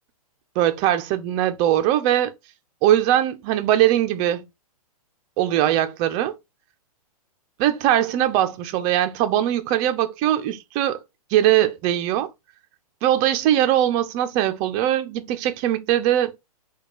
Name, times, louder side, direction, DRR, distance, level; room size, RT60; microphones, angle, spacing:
voice 1, 0.6-2.3 2.8-4.4 5.4-6.3 7.6-11.0 11.3-12.3 13.0-16.3, right 12 dB, 20° right, 0.4 m, -21 dB
4.9 x 2.3 x 4.7 m
hypercardioid pair, 155°, 19 cm